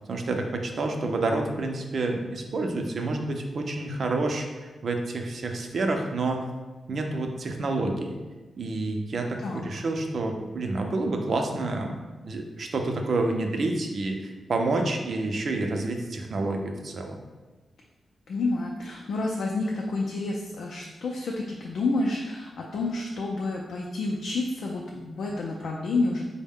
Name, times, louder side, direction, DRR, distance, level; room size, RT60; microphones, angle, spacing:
voice 1, 0.1-4.5 4.8-6.4 6.9-8.2 8.6-17.2, right 2 dB, 55° right, 3 dB, 0.4 m, -28 dB
voice 2, 9.4-9.7 18.3-26.2, left 2 dB, 75° left, -2 dB, 0.4 m, -29 dB
4.6 x 2.1 x 3.5 m, 1.2 s
wide cardioid pair, 125°, 0 cm